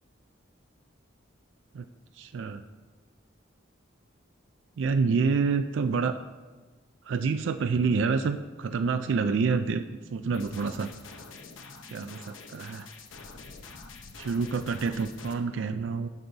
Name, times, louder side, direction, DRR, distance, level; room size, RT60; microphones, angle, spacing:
voice 1, 2.2-2.6 4.8-6.2 7.0-9.8 10.1-10.9 11.8-12.9 14.2-16.1, right 5 dB, 70° right, 9 dB, 0.3 m, -27 dB
sound 1, 10.3-15.3, left 4 dB, 85° left, 0.8 m, -46 dB
11.5 x 5.3 x 3.9 m, 1.3 s
head